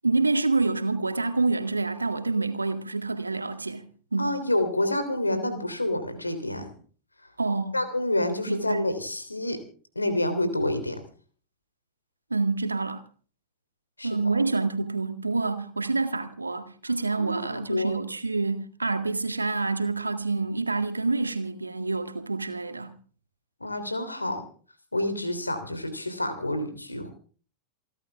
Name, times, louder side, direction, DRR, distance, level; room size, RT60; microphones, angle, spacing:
voice 1, 0.0-3.8 4.1-4.4 7.4-7.8 8.5-8.9 12.3-13.0 14.0-22.9, right 3 dB, 80° right, 1.8 m, -27 dB
voice 2, 4.2-6.7 7.7-9.6 9.9-11.0 14.0-14.2 17.1-17.9 23.6-24.4 24.9-27.1, left 1 dB, 80° left, 3.2 m, -28 dB
28.5 x 11.5 x 3.5 m
figure-of-eight pair, 90°, 0 cm